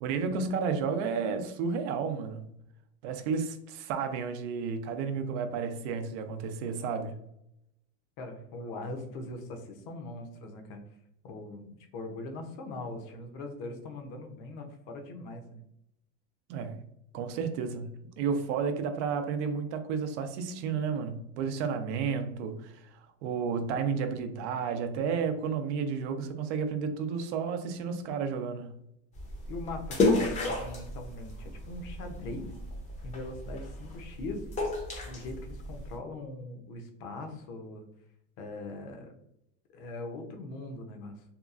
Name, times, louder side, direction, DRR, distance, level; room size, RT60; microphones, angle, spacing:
voice 1, 0.0-2.5 3.0-7.2 16.5-16.8 17.1-22.7 23.2-28.8, right 6 dB, 80° right, 7 dB, 0.5 m, -32 dB
voice 2, 8.2-10.8 11.2-15.6 29.5-32.5 33.0-34.5 34.9-37.8 38.4-39.1 39.7-41.2, left 2 dB, 60° left, 5 dB, 0.7 m, -41 dB
sound 1, 29.1-36.0, left 2 dB, 20° left, 0.5 m, -32 dB
2.8 x 2.3 x 2.4 m, 0.78 s
supercardioid pair, 135°, 35 cm